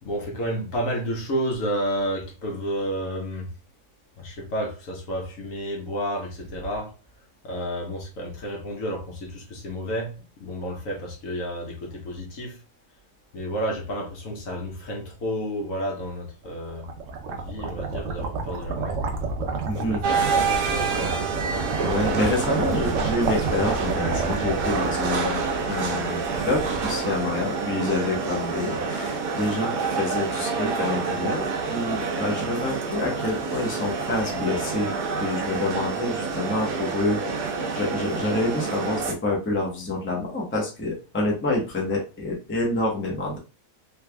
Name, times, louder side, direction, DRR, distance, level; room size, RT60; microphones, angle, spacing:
voice 1, 0.0-3.5 4.2-6.9 7.4-12.6 13.3-16.9 17.3-19.0 19.8-21.2, equal, 60° left, 1.2 m, -31 dB
sound 1, 16.5-27.7, right 4 dB, 65° right, 0.9 m, -31 dB
voice 2, 19.6-20.3 21.8-25.4 25.7-34.9 35.2-43.4, left 2 dB, 10° left, 0.7 m, -27 dB
sound 2, 20.0-39.1, right 4 dB, 80° right, 1.3 m, -28 dB
3.4 x 3.3 x 2.2 m
omnidirectional pair, 1.7 m